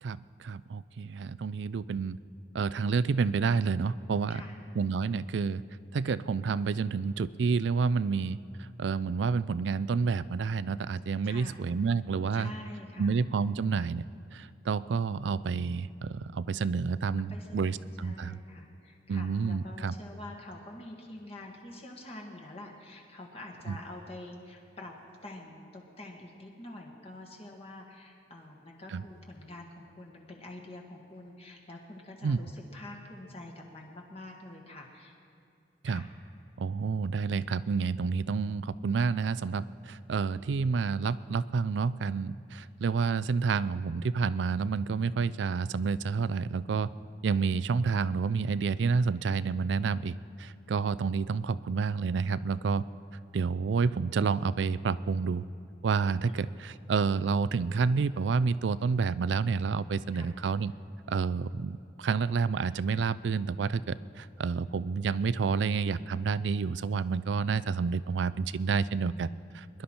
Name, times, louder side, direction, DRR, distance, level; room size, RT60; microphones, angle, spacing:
voice 1, 0.0-2.2 2.5-4.4 4.8-5.6 5.9-12.5 13.0-14.0 14.3-18.4 19.1-19.9 23.7-23.8 28.9-29.0 32.2-32.4 35.8-36.1 36.6-46.9 47.2-50.1 50.4-52.9 53.3-55.4 55.8-60.7 61.1-69.8, right 5 dB, 80° right, 17 dB, 0.4 m, -29 dB
voice 2, 11.2-11.6 12.3-13.2 17.3-24.9 25.2-35.1 35.8-36.1 56.3-56.4 60.1-60.3, left 1 dB, 35° left, 0 dB, 1.5 m, -46 dB
22.5 x 11.5 x 4.4 m, 2.5 s
head